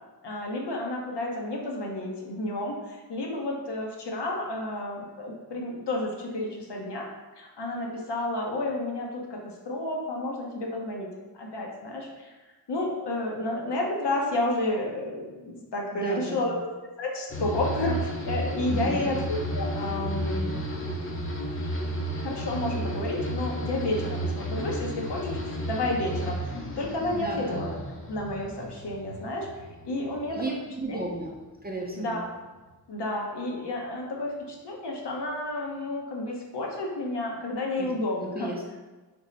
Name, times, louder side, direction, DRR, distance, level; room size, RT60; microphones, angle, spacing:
voice 1, 0.2-7.1 7.4-11.1 11.4-12.3 12.7-16.7 17.0-20.5 22.2-27.8 28.1-29.5 29.8-30.4 30.9-31.0 32.0-32.2 32.9-38.5, left 2 dB, 70° left, -1 dB, 0.8 m, -31 dB
voice 2, 15.9-16.6 18.7-19.2 27.1-27.8 30.3-31.4 31.6-32.2 37.8-37.9 38.2-38.6, right 2 dB, 25° right, -1 dB, 0.4 m, -34 dB
sound 1, 17.3-30.6 30.9-31.6, right 1 dB, 30° left, 0.5 m, -33 dB
3.6 x 2.1 x 3.9 m, 1.2 s
wide cardioid pair, 80°, 43 cm